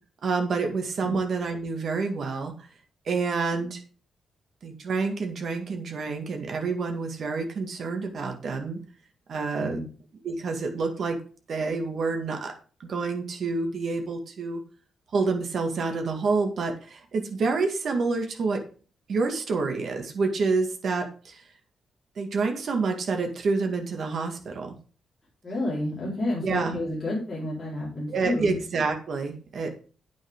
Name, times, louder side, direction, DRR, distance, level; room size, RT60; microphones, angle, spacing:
voice 1, 0.2-2.5 3.1-3.8 4.6-8.8 9.3-9.8 10.2-11.2 11.5-12.5 12.8-14.6 15.1-18.6 19.1-21.4 22.2-24.7 26.4-26.8 28.1-29.7, right 4 dB, 50° right, 4 dB, 2.3 m, -28 dB
voice 2, 25.4-28.6 29.6-29.7, left 1 dB, 20° left, -6 dB, 4.1 m, -30 dB
9.2 x 9.2 x 3.8 m, 0.38 s
wide cardioid pair, 165°, 0 cm